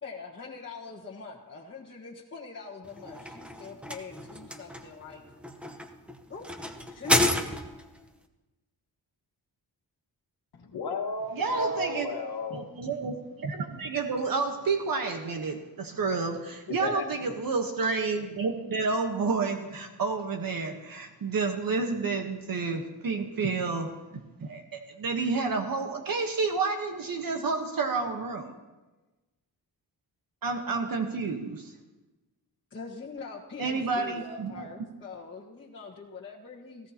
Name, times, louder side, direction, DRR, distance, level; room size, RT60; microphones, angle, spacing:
voice 1, 0.0-5.2 6.3-6.4 6.9-7.5 32.7-36.9, left 4 dB, 30° left, -5 dB, 1.5 m, -43 dB
sound 1, 2.8-8.0, left 1 dB, 5° right, 1.0 m, -31 dB
voice 2, 10.6-12.7 16.8-17.0, left 2 dB, 70° left, 3 dB, 1.7 m, -33 dB
voice 3, 11.3-12.1 12.5-23.9 24.4-28.5 30.4-31.7 33.6-34.7, right 4 dB, 60° right, 4 dB, 1.3 m, -30 dB
18.5 x 16.5 x 2.9 m, 1.1 s
wide cardioid pair, 115°, 39 cm